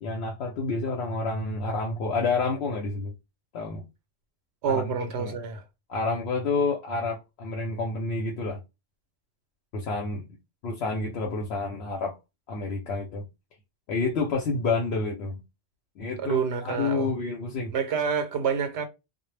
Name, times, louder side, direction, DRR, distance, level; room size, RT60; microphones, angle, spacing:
voice 1, 0.0-3.1 3.5-3.8 4.7-5.4 5.9-8.6 9.7-10.3 10.6-12.1 12.5-13.3 13.9-15.4 16.0-17.7, left 3 dB, 75° left, 0.8 m, -29 dB
voice 2, 4.6-5.6 16.2-17.1 17.7-18.9, right 6 dB, 80° right, 0.9 m, -28 dB
2.1 x 2.0 x 3.1 m
omnidirectional pair, 1.1 m